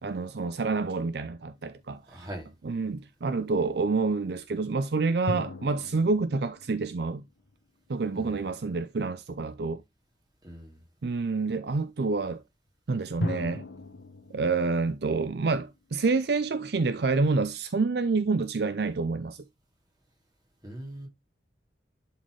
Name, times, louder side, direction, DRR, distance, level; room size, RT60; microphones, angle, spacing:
voice 1, 0.0-2.3 2.6-7.2 7.9-9.8 11.0-12.4 12.9-13.7 14.3-19.4, right 4 dB, 60° right, 0.5 m, -28 dB
sound 1, 0.6-2.3 5.3-8.0 13.2-16.2, left 1 dB, 90° left, 1.0 m, -39 dB
voice 2, 2.1-2.5 8.1-8.6 10.4-10.8 20.6-21.1, right 1 dB, 20° right, 2.8 m, -41 dB
11.0 x 4.2 x 3.2 m
head